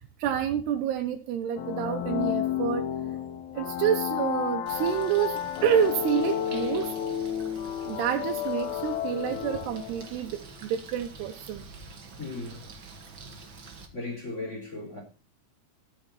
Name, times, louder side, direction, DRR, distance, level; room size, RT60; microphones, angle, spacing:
voice 1, 0.2-2.8 3.5-6.9 7.8-11.6, right 9 dB, 85° right, 3.1 m, -28 dB
sound 1, 1.6-10.2, left 10 dB, 65° left, 2.0 m, -31 dB
Bird, 4.7-13.9, right 3 dB, 40° right, 1.9 m, -46 dB
voice 2, 12.2-12.6 13.9-15.0, left 2 dB, 15° left, 4.3 m, -36 dB
14.0 x 7.4 x 4.3 m
omnidirectional pair, 4.6 m